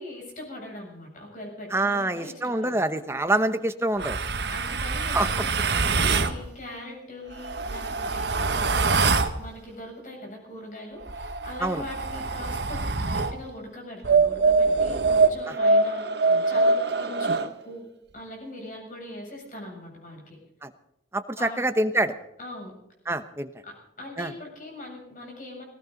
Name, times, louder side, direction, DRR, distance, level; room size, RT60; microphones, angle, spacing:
voice 1, 0.0-2.9 3.5-3.6 4.5-9.0 9.4-17.9 18.1-20.4 21.4-21.6 22.4-22.7 23.6-25.6, left 1 dB, 45° left, 0 dB, 7.7 m, -41 dB
voice 2, 1.7-4.2 5.1-5.3 11.6-11.8 20.6-20.7 21.1-22.1 23.1-23.5 24.2-24.3, right 2 dB, 15° right, 9 dB, 0.9 m, -25 dB
sound 1, 4.0-6.4 7.3-9.4 11.0-13.4 14.0-17.5, right 3 dB, 70° right, 1.2 m, -24 dB
19.5 x 18.5 x 4.0 m, 0.83 s
head